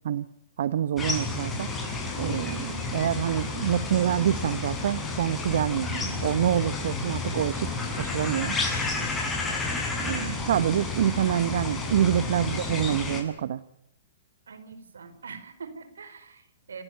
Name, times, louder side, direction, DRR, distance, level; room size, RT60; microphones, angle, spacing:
voice 1, 0.6-1.7 2.2-7.7 8.0-8.6 10.0-13.6, right 10 dB, 65° right, 14 dB, 1.1 m, -26 dB
sound 1, 1.0-13.2, left 3 dB, 15° left, 7.1 m, -31 dB
voice 2, 10.0-10.6 14.5-16.8, right 5 dB, 85° right, 11 dB, 4.6 m, -44 dB
29.0 x 15.0 x 8.8 m, 0.76 s
hypercardioid pair, 130°, 0 cm